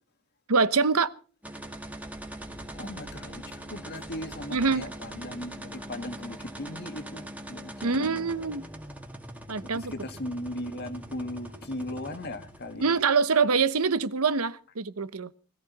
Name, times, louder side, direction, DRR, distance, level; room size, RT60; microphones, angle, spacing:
voice 1, 0.5-1.1 4.5-4.8 7.8-8.6 9.5-9.9 12.8-15.3, right 5 dB, 90° right, 1.0 m, -24 dB
sound 1, 1.4-13.1, right 1 dB, 5° right, 2.0 m, -42 dB
voice 2, 2.8-8.1 9.9-12.8, left 1 dB, 50° left, 2.0 m, -37 dB
21.0 x 14.0 x 4.1 m
head